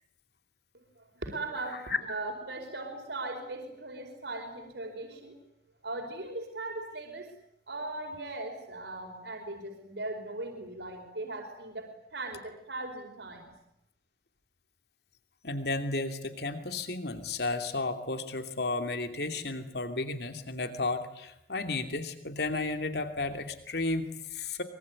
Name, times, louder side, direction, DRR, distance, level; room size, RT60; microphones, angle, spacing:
voice 1, 0.7-5.4 5.8-7.3 7.7-11.9 12.1-13.5, right 2 dB, 80° right, 3 dB, 4.9 m, -39 dB
voice 2, 15.4-24.6, left 3 dB, 65° left, 7 dB, 2.8 m, -33 dB
24.0 x 23.5 x 9.7 m, 0.80 s
head